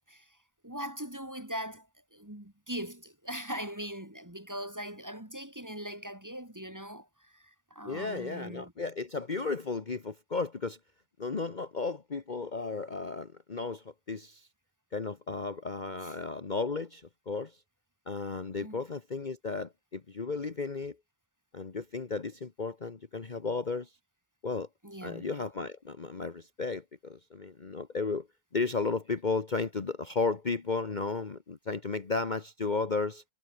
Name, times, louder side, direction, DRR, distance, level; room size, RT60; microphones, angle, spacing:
voice 1, 0.6-8.7 16.0-16.1 18.6-18.8 24.8-25.3, equal, 15° right, 2.8 m, -41 dB
voice 2, 7.8-10.8 11.2-14.5 14.9-17.5 18.1-21.0 21.5-23.9 24.4-24.7 25.0-28.3 28.5-33.2, left 4 dB, 35° left, 1.4 m, -34 dB
omnidirectional pair, 1.4 m